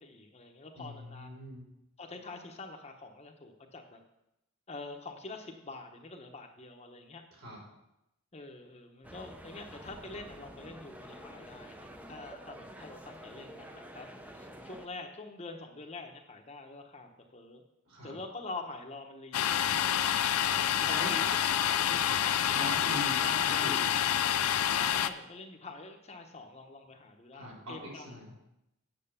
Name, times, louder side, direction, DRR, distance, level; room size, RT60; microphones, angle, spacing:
voice 1, 0.0-1.3 2.0-4.0 4.7-7.2 8.3-13.7 13.9-14.1 14.3-17.6 18.0-20.3 20.9-22.5 24.7-28.3, left 3 dB, 30° left, 3 dB, 0.8 m, -46 dB
voice 2, 0.8-1.6 7.4-7.6 17.9-18.1 20.8-21.1 22.5-23.9 27.3-28.3, equal, 60° right, -3 dB, 4.1 m, -41 dB
sound 1, 9.0-14.9, equal, 5° right, 0.6 m, -48 dB
Domestic sounds home sounds, 19.3-25.1, left 10 dB, 80° left, 0.5 m, -28 dB
8.8 x 6.4 x 6.8 m, 0.86 s
head